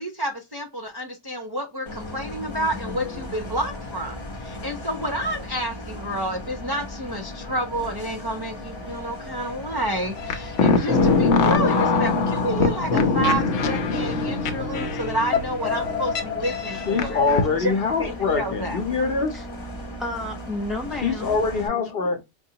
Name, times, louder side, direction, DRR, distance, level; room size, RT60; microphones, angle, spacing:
voice 1, 0.0-17.2 17.5-17.7 18.0-18.8, right 1 dB, 30° right, 0.4 m, -29 dB
Bus, 1.9-21.7, left 1 dB, 30° left, 0.7 m, -37 dB
sound 1, 10.2-17.4, left 4 dB, 85° left, 1.0 m, -23 dB
voice 2, 16.9-19.4 21.0-22.2, left 4 dB, 55° left, 0.9 m, -24 dB
voice 3, 20.0-21.4, left 2 dB, ahead, 0.8 m, -32 dB
4.6 x 2.3 x 2.7 m
omnidirectional pair, 1.2 m